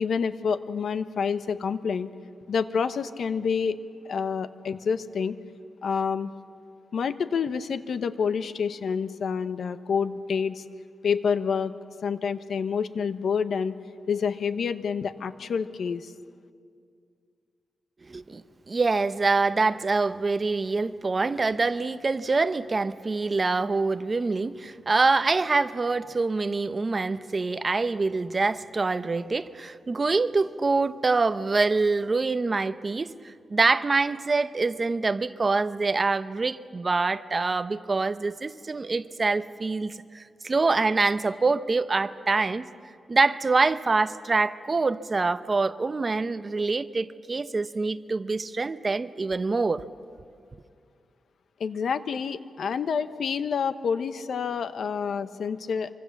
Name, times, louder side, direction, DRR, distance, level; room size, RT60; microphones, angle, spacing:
voice 1, 0.0-2.1 2.5-3.8 4.0-5.4 5.8-6.3 6.9-10.6 11.0-11.7 12.0-13.7 14.1-16.1 51.6-55.9, left 6 dB, 65° left, 0.9 m, -28 dB
voice 2, 18.1-42.7 43.1-49.8, right 3 dB, 30° right, 0.6 m, -25 dB
25.0 x 24.5 x 7.2 m
wide cardioid pair, 130°, 0 cm